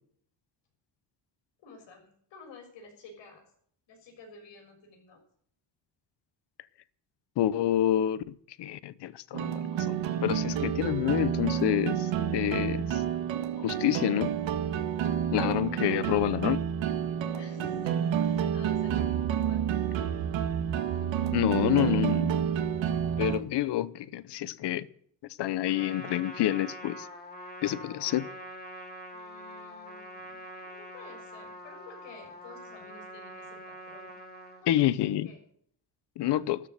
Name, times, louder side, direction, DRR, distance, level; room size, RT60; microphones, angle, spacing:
voice 1, 1.6-3.5 3.9-5.2 17.3-19.9 29.1-34.1 34.6-35.4 36.2-36.4, left 4 dB, 85° left, 6.8 m, -51 dB
voice 2, 7.4-13.0 13.6-14.4 15.3-16.6 21.3-22.3 23.2-24.9 25.4-27.1 27.6-28.3 34.7-35.3 36.2-36.6, left 12 dB, 65° left, 0.8 m, -28 dB
sound 1, 9.3-23.4, right 9 dB, 90° right, 1.7 m, -29 dB
Trumpet, 25.6-34.6, equal, 20° left, 3.0 m, -44 dB
13.5 x 13.0 x 6.6 m
cardioid pair, 155°, 44 cm